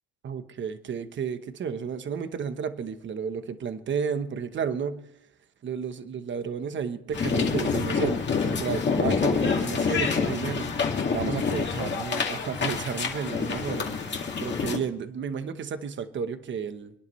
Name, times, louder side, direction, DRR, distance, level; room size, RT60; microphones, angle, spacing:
voice 1, 0.2-5.0 5.6-10.7 11.1-14.0 14.4-16.9, right 6 dB, 30° right, 10 dB, 1.1 m, -32 dB
sound 1, 7.1-14.8, left 5 dB, 30° left, 2.2 m, -27 dB
29.5 x 10.5 x 3.2 m, 0.82 s
cardioid pair, 150°, 38 cm